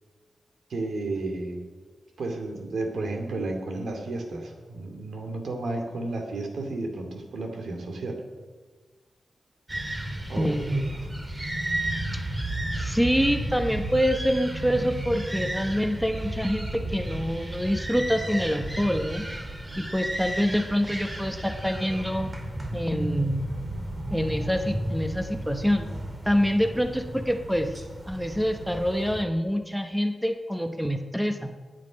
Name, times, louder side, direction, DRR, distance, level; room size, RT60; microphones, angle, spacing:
voice 1, 0.7-1.6 2.2-8.2 10.3-10.5, right 2 dB, 80° right, 3 dB, 2.4 m, -32 dB
sound 1, 9.7-29.2, right 1 dB, 20° right, 1.9 m, -33 dB
voice 2, 10.4-10.9 12.7-19.3 19.8-22.3 22.7-23.5 24.1-25.9 26.3-27.7 28.1-31.5, equal, ahead, 6 dB, 0.9 m, -26 dB
19.5 x 9.4 x 5.2 m, 1.4 s
wide cardioid pair, 135°, 0 cm